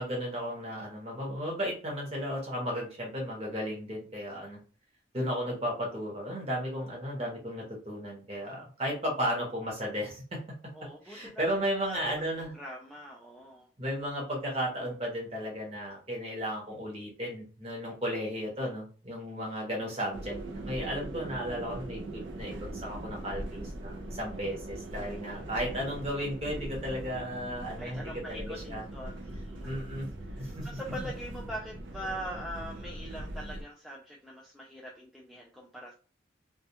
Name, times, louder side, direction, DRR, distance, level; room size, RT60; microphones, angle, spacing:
voice 1, 0.0-4.6 5.1-10.4 11.0-12.5 13.8-28.8 29.6-30.1 30.4-30.7, equal, 30° right, -2 dB, 0.9 m, -34 dB
voice 2, 10.7-11.4 11.8-13.7 24.4-25.1 27.8-29.8 30.2-35.9, equal, ahead, -4 dB, 0.3 m, -43 dB
sound 1, 20.1-33.6, right 1 dB, 65° right, 0.4 m, -41 dB
2.3 x 2.3 x 2.7 m, 0.37 s
head